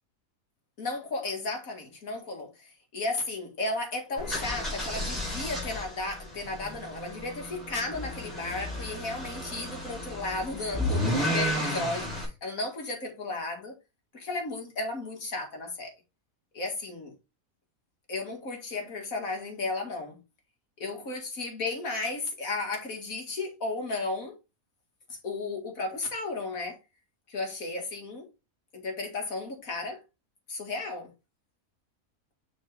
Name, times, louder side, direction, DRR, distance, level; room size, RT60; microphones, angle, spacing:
voice 1, 0.8-13.7 14.1-15.9 16.5-17.1 18.1-20.2 20.8-24.3 25.2-26.8 27.3-28.3 28.7-30.0 30.5-31.1, left 3 dB, 70° left, 2.6 m, -34 dB
sound 1, 4.2-12.3, equal, ahead, 4.2 m, -33 dB
7.1 x 5.1 x 3.4 m
omnidirectional pair, 1.5 m